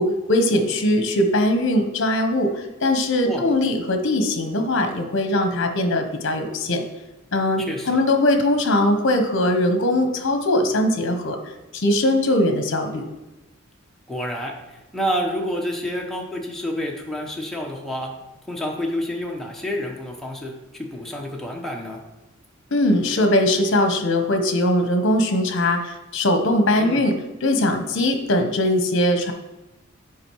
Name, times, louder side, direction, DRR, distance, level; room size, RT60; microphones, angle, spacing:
voice 1, 0.0-6.8 7.3-11.4 11.7-13.0 22.7-27.1 27.4-29.3, left 1 dB, 60° left, 6 dB, 1.0 m, -20 dB
voice 2, 7.7-8.0 14.1-18.1 18.5-22.0 26.8-27.1, equal, ahead, -1 dB, 1.1 m, -29 dB
8.6 x 5.0 x 4.7 m, 1.0 s
head